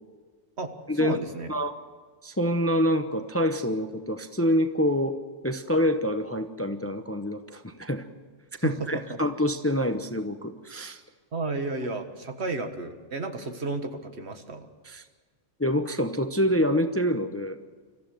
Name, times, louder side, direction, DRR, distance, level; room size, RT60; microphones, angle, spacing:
voice 1, 0.6-1.5 8.6-9.2 11.3-14.7, right 3 dB, 65° right, 7 dB, 1.8 m, -32 dB
voice 2, 2.2-5.2 5.4-8.1 8.6-11.0 14.8-15.0 15.6-17.6, equal, 15° left, 8 dB, 0.8 m, -26 dB
26.0 x 14.5 x 7.7 m, 1.5 s
omnidirectional pair, 1.2 m